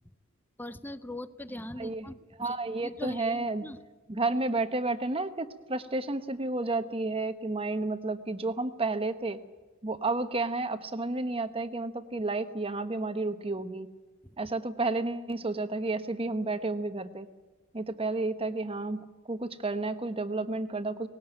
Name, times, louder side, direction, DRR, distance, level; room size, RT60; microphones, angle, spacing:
voice 1, 0.6-3.8 14.2-14.4, left 1 dB, 10° left, 13 dB, 0.8 m, -41 dB
voice 2, 2.4-3.6 4.1-9.4 9.8-13.9 14.4-17.3 17.7-21.1, right 2 dB, 25° right, 10 dB, 1.1 m, -31 dB
19.5 x 18.0 x 8.9 m, 1.3 s
head